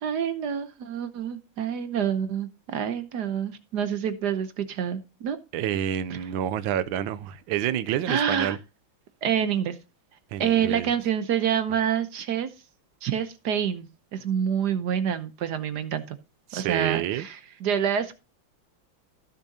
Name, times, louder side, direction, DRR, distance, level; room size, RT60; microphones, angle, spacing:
voice 1, 0.0-5.4 6.1-6.2 8.1-8.6 9.2-9.8 10.4-12.5 13.0-16.2 16.5-18.2, right 8 dB, 65° right, 1.3 m, -27 dB
voice 2, 5.5-8.6 10.3-10.9 16.5-17.3, right 10 dB, 85° right, 1.4 m, -28 dB
15.5 x 6.9 x 2.8 m
omnidirectional pair, 2.1 m